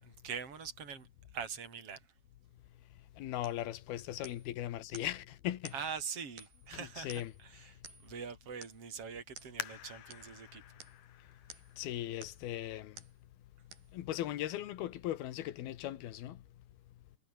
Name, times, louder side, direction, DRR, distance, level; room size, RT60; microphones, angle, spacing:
voice 1, 0.0-2.1 5.7-10.6, right 6 dB, 40° right, 5.7 m, -43 dB
voice 2, 3.2-5.7 7.0-7.3 11.8-13.0 13.9-16.4, left 13 dB, 80° left, 3.3 m, -38 dB
sound 1, 3.4-3.7 4.2-4.5 4.9-5.2 5.6-5.9 6.4-6.7 7.1-7.4 7.8-8.2 8.6-8.9 9.4-9.6 10.1-10.3 10.8-11.0 11.5-11.8 12.2-12.5 13.0-13.2 13.7-13.9 14.5-14.6, right 5 dB, 70° right, 8.1 m, -53 dB
sound 2, 9.6-12.9 13.5-13.6 14.3-14.7 15.0-15.1, left 12 dB, 60° left, 2.5 m, -48 dB
omnidirectional pair, 4.4 m